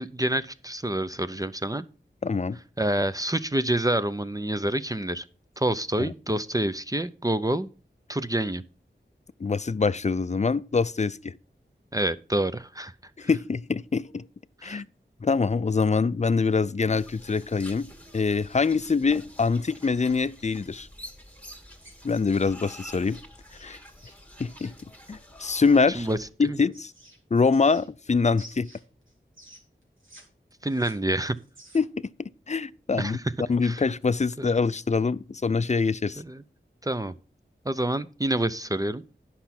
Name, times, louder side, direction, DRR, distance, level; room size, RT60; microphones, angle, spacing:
voice 1, 0.0-1.8 2.8-5.2 5.6-7.7 8.1-8.6 11.9-12.9 14.6-14.8 25.9-26.2 26.4-26.6 30.6-31.4 32.9-33.2 33.6-33.8 34.4-34.5 36.2-36.4 36.8-37.1 37.6-39.0, right 1 dB, 20° right, 0.6 m, -27 dB
voice 2, 2.2-2.6 6.0-6.1 9.4-11.3 13.2-14.2 14.6-14.9 15.2-17.9 18.1-20.9 22.0-23.2 23.6-23.8 24.4-24.7 25.1-26.1 26.4-26.9 27.3-28.7 31.7-33.2 33.5-36.2, left 4 dB, 35° left, 0.4 m, -24 dB
sound 1, 16.9-26.3, equal, 10° left, 2.0 m, -48 dB
sound 2, 21.8-24.7 26.2-28.1 28.3-30.2 30.5-32.0, right 1 dB, 90° right, 3.0 m, -52 dB
10.5 x 5.8 x 5.8 m
wide cardioid pair, 50°, 20 cm